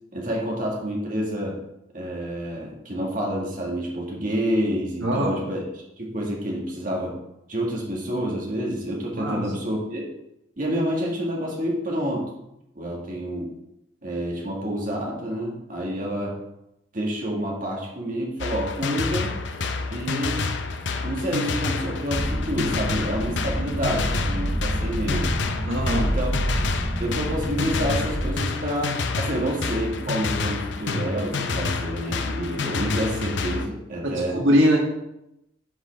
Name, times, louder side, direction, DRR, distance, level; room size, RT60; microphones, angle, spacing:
voice 1, 0.1-1.6 1.9-7.2 7.5-10.1 10.6-12.3 12.8-13.5 14.0-16.4 16.9-19.3 19.9-20.4 21.0-25.3 26.0-26.4 27.0-34.4, equal, 40° right, -2 dB, 1.9 m, -28 dB
voice 2, 5.0-5.4 9.2-9.4 25.7-26.1 34.0-34.8, equal, 75° right, -1 dB, 1.5 m, -21 dB
sound 1, 18.4-33.7, left 4 dB, 65° left, 0.7 m, -28 dB
sound 2, 22.2-28.4, right 1 dB, 15° right, 0.6 m, -28 dB
11.0 x 5.6 x 3.5 m, 0.86 s
head